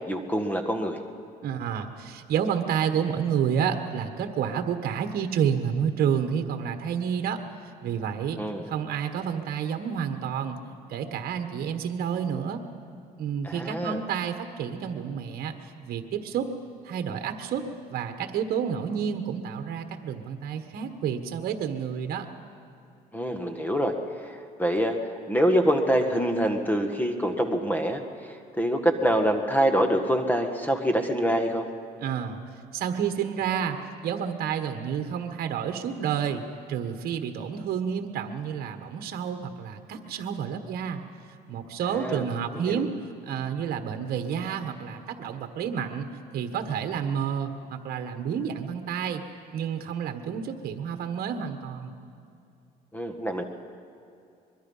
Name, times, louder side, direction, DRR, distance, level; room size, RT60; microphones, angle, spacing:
voice 1, 0.1-1.0 8.4-8.7 13.4-14.0 23.1-23.9 24.2-25.0 25.3-28.0 28.6-31.7 42.0-42.3 42.7-42.9 52.9-53.4, equal, 10° left, 6 dB, 1.7 m, -25 dB
voice 2, 1.4-7.4 7.8-8.4 8.7-10.6 10.9-12.6 13.2-15.5 15.8-16.5 16.8-22.3 32.0-32.4 32.7-33.8 34.0-36.4 36.7-41.0 41.5-42.9 43.3-46.1 46.3-49.2 49.5-51.9, right 8 dB, 60° right, 7 dB, 1.4 m, -29 dB
24.5 x 22.0 x 5.6 m, 2.5 s
cardioid pair, 110°, 17 cm